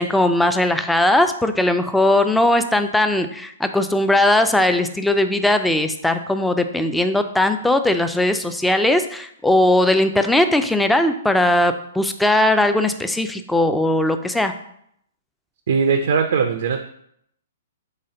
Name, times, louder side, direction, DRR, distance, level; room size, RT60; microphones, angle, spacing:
voice 1, 0.0-14.5, left 1 dB, 5° left, 8 dB, 0.3 m, -19 dB
voice 2, 15.7-16.8, right 5 dB, 65° right, 5 dB, 0.4 m, -19 dB
4.1 x 3.3 x 3.8 m, 0.72 s
hypercardioid pair, 130°, 0 cm